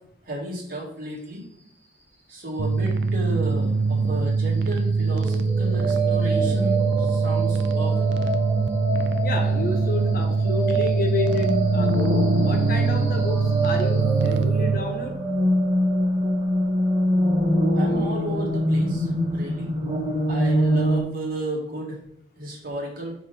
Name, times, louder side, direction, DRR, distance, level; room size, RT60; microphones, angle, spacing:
voice 1, 0.2-1.4 2.3-7.9 17.7-19.7 20.3-22.0 22.4-23.1, right 1 dB, 55° right, -3 dB, 2.2 m, -33 dB
sound 1, 2.6-14.8, right 4 dB, 75° right, 0.5 m, -23 dB
sound 2, 5.0-19.0, right 6 dB, 15° right, 2.5 m, -30 dB
voice 2, 9.2-15.2, left 4 dB, 55° left, 4 dB, 1.0 m, -30 dB
sound 3, 11.3-21.0, equal, 30° right, 1.0 m, -24 dB
5.5 x 4.9 x 4.1 m, 0.73 s
head